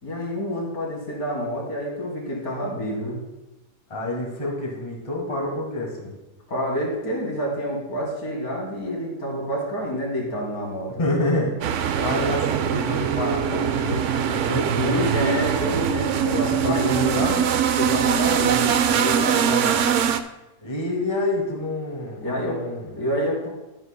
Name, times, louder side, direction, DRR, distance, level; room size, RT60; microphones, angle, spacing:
voice 1, 0.0-3.2 6.5-10.9 14.7-17.5 17.8-19.9 22.2-22.6 22.9-23.5, equal, 60° left, -3 dB, 3.0 m, -28 dB
voice 2, 3.9-6.1 11.0-15.1 15.3-15.4 16.3-17.4 20.6-22.9, left 1 dB, 20° left, -2 dB, 1.7 m, -28 dB
sound 1, 11.6-20.2, right 8 dB, 80° right, 0.6 m, -22 dB
11.0 x 11.0 x 2.2 m, 0.99 s
omnidirectional pair, 1.8 m